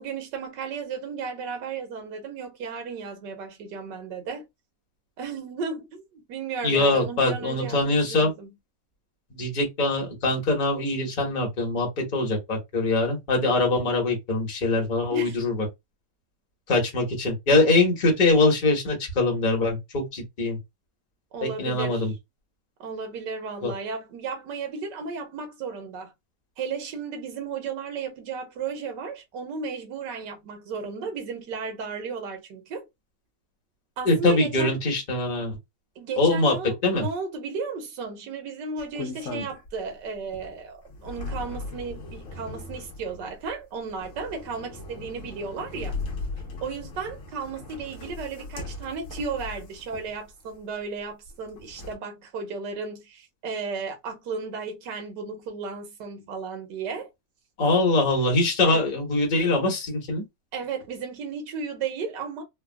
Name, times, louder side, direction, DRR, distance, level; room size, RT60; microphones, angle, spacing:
voice 1, 0.0-4.5 5.2-8.5 15.1-15.4 21.3-22.1 22.8-26.1 26.6-32.9 34.0-34.8 36.0-46.0 46.6-57.1 58.6-58.9 60.5-62.4, right 5 dB, 80° right, 1.5 m, -34 dB
voice 2, 6.6-8.3 9.3-15.7 16.7-20.6 21.4-22.1 23.6-23.7 34.0-35.6 36.2-36.5 36.8-37.0 57.6-60.2, left 2 dB, 30° left, 1.1 m, -23 dB
sound 1, 38.8-39.9 40.3-50.6 51.3-52.0, left 3 dB, 55° left, 1.0 m, -38 dB
3.4 x 2.2 x 2.2 m
omnidirectional pair, 1.9 m